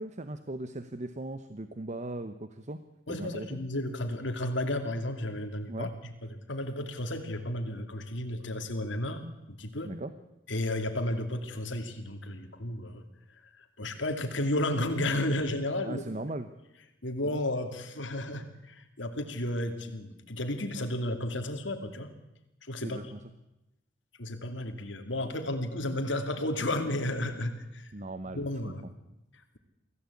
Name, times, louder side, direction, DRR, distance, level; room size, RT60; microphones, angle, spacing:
voice 1, 0.0-2.8 3.1-3.6 5.7-5.9 9.8-10.1 15.8-16.5 17.2-17.5 22.8-23.2 27.9-28.9, right 2 dB, 40° right, 11 dB, 0.9 m, -38 dB
voice 2, 3.1-9.2 9.5-9.9 10.5-13.0 13.5-16.0 17.0-22.1 22.6-23.0 24.2-27.9 28.3-28.9, left 1 dB, 75° left, 6 dB, 2.7 m, -33 dB
24.0 x 15.5 x 8.5 m, 0.93 s
head